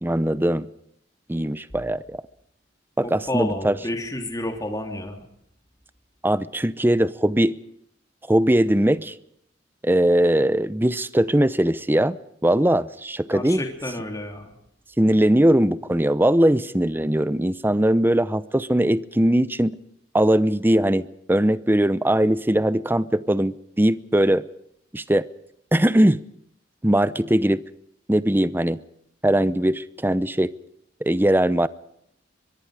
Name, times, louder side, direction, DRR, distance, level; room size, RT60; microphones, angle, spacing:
voice 1, 0.0-0.7 1.3-2.2 3.0-3.8 6.2-7.6 8.3-9.1 9.8-12.2 12.4-13.6 15.0-19.8 20.1-24.4 24.9-25.3 25.7-26.2 26.8-27.6 28.1-28.8 29.2-30.5 31.0-31.7, right 1 dB, 10° right, 16 dB, 0.7 m, -20 dB
voice 2, 3.0-5.2 13.3-14.5, left 1 dB, 20° left, 4 dB, 3.2 m, -30 dB
23.5 x 22.5 x 5.0 m, 0.73 s
head